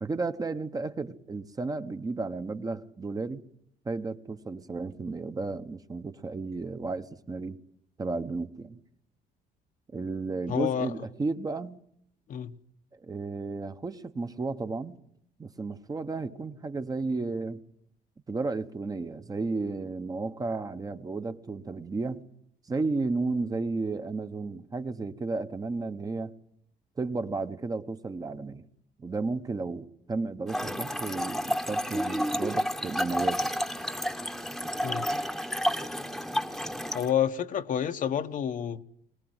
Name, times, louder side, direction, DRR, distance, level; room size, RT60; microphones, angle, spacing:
voice 1, 0.0-3.4 3.8-7.6 8.0-8.8 9.9-11.8 13.0-15.0 15.4-17.6 18.3-22.2 22.7-26.3 27.0-28.7 29.0-33.5, right 3 dB, 20° right, 1.0 m, -33 dB
voice 2, 10.5-10.9 12.3-12.5 34.8-35.1 36.9-38.8, left 9 dB, 50° left, 1.0 m, -29 dB
Trickle dribble / Fill (with liquid), 30.5-37.1, equal, ahead, 1.1 m, -31 dB
22.0 x 19.5 x 7.9 m
cardioid pair, 110°, 17 cm